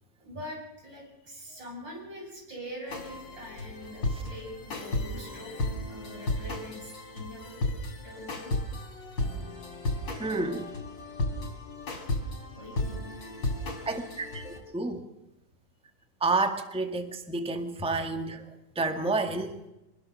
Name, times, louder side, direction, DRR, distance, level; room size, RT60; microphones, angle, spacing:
voice 1, 0.2-5.5 5.9-7.6 8.0-8.5 12.5-13.3 13.8-13.9, equal, 85° right, 0 dB, 7.8 m, -43 dB
sound 1, 2.9-14.6, left 2 dB, 80° left, 4.3 m, -34 dB
voice 2, 10.1-10.7 13.8-15.1 16.2-19.6, right 3 dB, 5° right, 6 dB, 1.6 m, -30 dB
24.5 x 20.0 x 6.5 m, 0.92 s
omnidirectional pair, 1.9 m